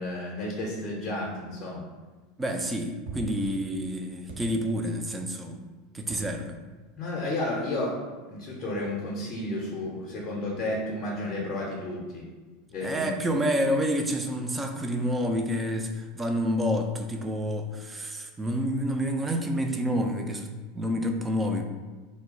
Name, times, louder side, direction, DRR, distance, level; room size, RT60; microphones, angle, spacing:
voice 1, 0.0-1.8 7.0-8.0 8.3-12.2 12.7-13.1, left 1 dB, 40° left, -3 dB, 0.6 m, -32 dB
voice 2, 2.4-5.6 5.9-6.6 12.8-21.6, equal, 15° right, 4 dB, 0.4 m, -28 dB
sound 1, 3.1-3.3 4.3-4.8 6.1-6.7 7.2-7.3, right 3 dB, 65° right, 0.7 m, -42 dB
2.2 x 2.1 x 3.7 m, 1.3 s
figure-of-eight pair, 80°, 0 cm